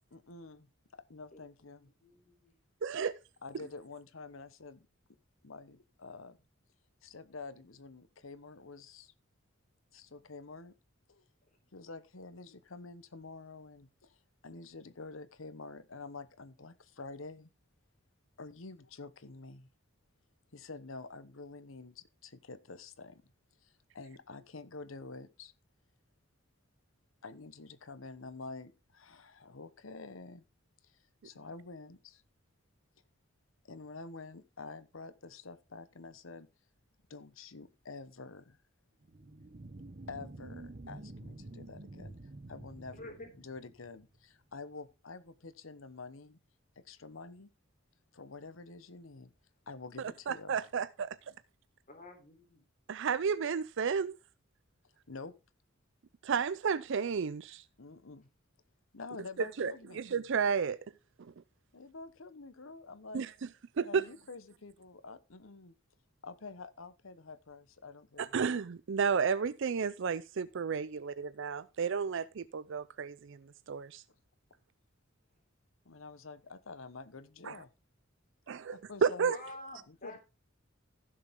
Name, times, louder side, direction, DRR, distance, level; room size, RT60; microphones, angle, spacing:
voice 1, 0.1-1.9 3.4-4.9 5.4-6.4 7.0-9.1 9.9-10.7 11.1-11.2 11.7-17.5 18.4-19.7 20.5-23.2 23.6-25.5 27.2-30.4 30.8-32.2 33.7-36.5 37.1-38.6 40.1-42.2 42.5-43.1 43.4-46.4 46.8-47.5 48.1-49.3 49.7-50.5 55.1-55.3 57.8-58.3 58.9-60.0 61.7-63.3 63.8-65.7 66.2-68.3 75.8-77.7 78.7-79.3 80.0-80.2, left 3 dB, 85° left, 1.1 m, -48 dB
voice 2, 1.8-2.6 11.5-11.6 42.9-43.3 51.9-52.6 79.3-80.2, left 1 dB, 45° left, 3.5 m, -49 dB
voice 3, 2.8-3.1 50.3-51.1 52.9-54.2 56.2-57.6 59.6-60.8 63.1-63.3 63.8-64.0 68.2-73.4 73.7-74.0 77.4-77.5 78.5-79.4, right 6 dB, 65° right, 0.5 m, -32 dB
sound 1, 39.0-44.0, right 2 dB, 45° right, 0.9 m, -49 dB
15.5 x 6.7 x 3.7 m
head